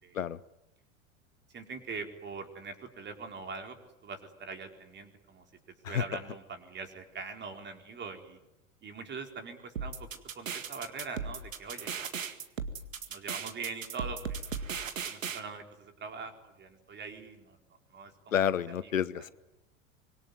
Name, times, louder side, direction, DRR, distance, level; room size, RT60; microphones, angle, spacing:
voice 1, 1.5-3.8 4.0-5.4 5.9-8.4 8.8-9.9 10.3-12.4 13.1-14.6 15.0-17.6 17.9-18.3 18.8-19.3, right 4 dB, 25° right, 5 dB, 4.5 m, -43 dB
sound 1, 9.8-15.4, right 6 dB, 75° right, 2.1 m, -37 dB
voice 2, 18.3-19.3, left 9 dB, 80° left, 17 dB, 1.0 m, -29 dB
25.5 x 23.0 x 9.7 m, 0.90 s
figure-of-eight pair, 85°, 39 cm